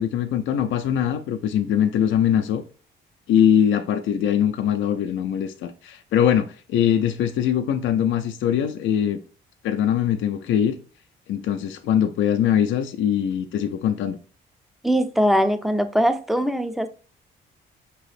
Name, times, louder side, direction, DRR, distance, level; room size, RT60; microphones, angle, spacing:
voice 1, 0.0-2.6 3.3-9.2 9.6-10.8 11.3-14.2, left 9 dB, 75° left, 0.5 m, -22 dB
voice 2, 14.8-16.9, equal, ahead, 0.4 m, -21 dB
5.4 x 2.9 x 3.2 m
cardioid pair, 90°, 20 cm